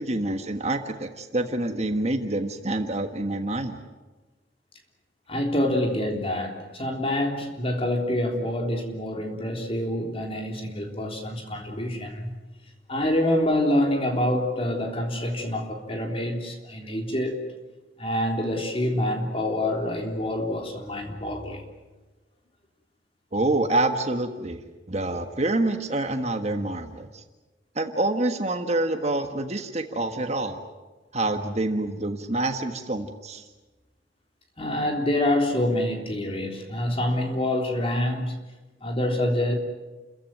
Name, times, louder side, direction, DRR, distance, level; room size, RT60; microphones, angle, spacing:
voice 1, 0.0-3.8 23.3-27.2 27.7-30.6 31.1-33.4, right 2 dB, 40° right, 6 dB, 1.5 m, -27 dB
voice 2, 5.3-12.3 12.9-17.4 18.0-21.6 34.6-38.4 38.8-39.5, left 1 dB, 35° left, 2 dB, 3.5 m, -26 dB
29.5 x 15.0 x 9.2 m, 1.2 s
head